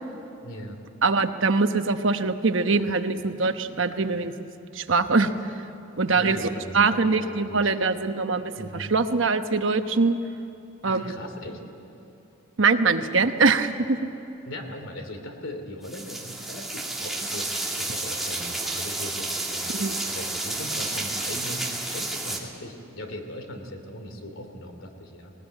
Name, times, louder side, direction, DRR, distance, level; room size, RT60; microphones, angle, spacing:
voice 1, 0.4-0.8 6.1-7.7 8.6-8.9 10.8-11.6 14.4-25.3, left 1 dB, 80° left, 5 dB, 2.7 m, -39 dB
voice 2, 1.0-4.5 4.7-5.3 6.0-6.4 6.7-10.2 10.8-11.1 12.6-14.0 19.7-20.0, right 4 dB, 70° right, 8 dB, 1.0 m, -23 dB
sound 1, 15.8-22.4, right 2 dB, ahead, 2.4 m, -31 dB
19.0 x 19.0 x 9.1 m, 3.0 s
head